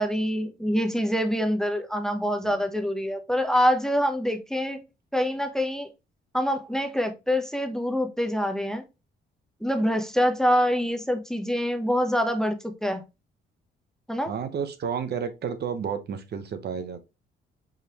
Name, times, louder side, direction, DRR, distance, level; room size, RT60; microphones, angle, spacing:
voice 1, 0.0-4.8 5.1-5.9 6.3-8.8 9.6-13.0 14.1-14.3, equal, 5° left, 0.8 m, -25 dB
voice 2, 14.3-17.0, right 7 dB, 55° right, 0.8 m, -31 dB
4.9 x 3.2 x 2.9 m
cardioid pair, 90°, 20 cm